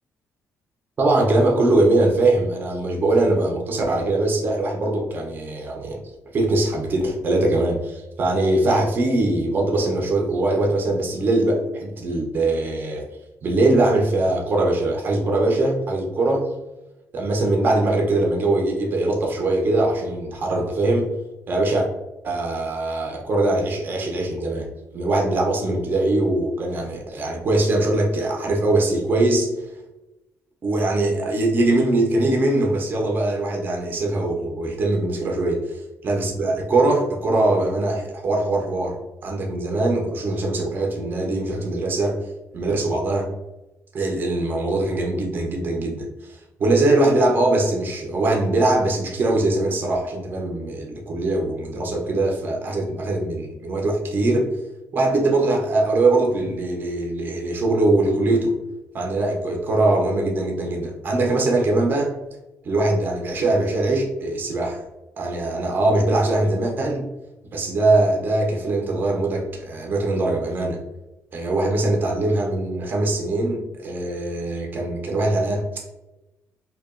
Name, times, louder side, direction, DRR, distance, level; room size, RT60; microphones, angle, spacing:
voice 1, 1.0-6.0 6.3-13.0 13.4-16.5 17.1-21.1 21.5-21.9 22.2-24.7 24.9-29.5 30.6-39.0 39.2-42.2 42.5-43.3 43.9-54.5 54.9-58.5 58.9-62.1 62.6-64.8 65.2-67.0 67.5-70.8 71.3-75.9, right 2 dB, 35° right, 0 dB, 0.4 m, -22 dB
2.7 x 2.2 x 2.3 m, 0.99 s
cardioid pair, 140°, 6 cm